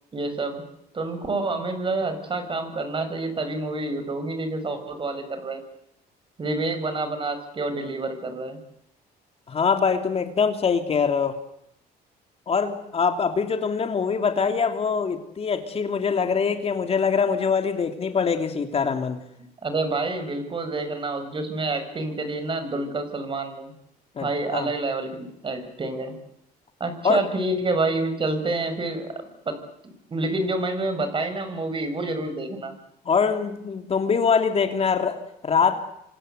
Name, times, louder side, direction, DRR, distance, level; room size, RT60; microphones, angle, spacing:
voice 1, 0.1-0.6 0.9-5.6 6.4-8.6 19.6-23.7 24.2-26.1 26.8-29.6 29.8-32.7, right 2 dB, 30° right, 8 dB, 6.6 m, -28 dB
voice 2, 9.5-11.4 12.5-19.2 24.2-24.7 27.0-27.2 33.0-35.8, left 6 dB, 35° left, 6 dB, 3.0 m, -23 dB
27.5 x 25.5 x 8.1 m, 0.78 s
cardioid pair, 110°, 17 cm